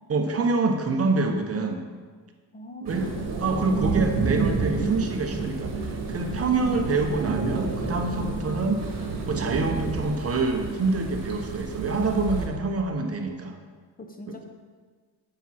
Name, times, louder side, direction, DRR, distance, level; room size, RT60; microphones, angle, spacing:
voice 1, 0.1-1.8 2.8-3.1 3.4-8.8 9.3-13.6, right 3 dB, 35° right, 4 dB, 0.9 m, -26 dB
voice 2, 2.5-3.2 6.4-6.6 14.0-14.4, equal, 20° left, 3 dB, 0.8 m, -41 dB
sound 1, 2.9-12.5, right 4 dB, 55° right, 2.2 m, -29 dB
sound 2, 3.6-11.2, left 1 dB, 80° left, 2.9 m, -51 dB
9.1 x 7.4 x 4.2 m, 1.5 s
cardioid pair, 120°, 40 cm